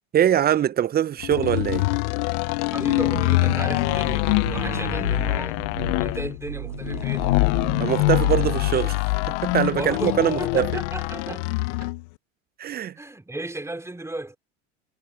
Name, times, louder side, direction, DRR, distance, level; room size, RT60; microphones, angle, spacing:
voice 1, 0.1-1.9 7.8-9.0 9.3-10.7 11.3-11.4 12.6-13.0, right 10 dB, 25° right, 0.7 m, -23 dB
sound 1, 1.2-12.0, left 26 dB, 65° left, 0.7 m, -24 dB
voice 2, 2.7-5.6 6.0-7.3 9.7-11.4 11.8-11.9 13.0-14.4, right 2 dB, 5° right, 3.3 m, -34 dB
sound 2, 2.8-8.8, right 13 dB, 85° right, 1.4 m, -35 dB
hypercardioid pair, 90°, 38 cm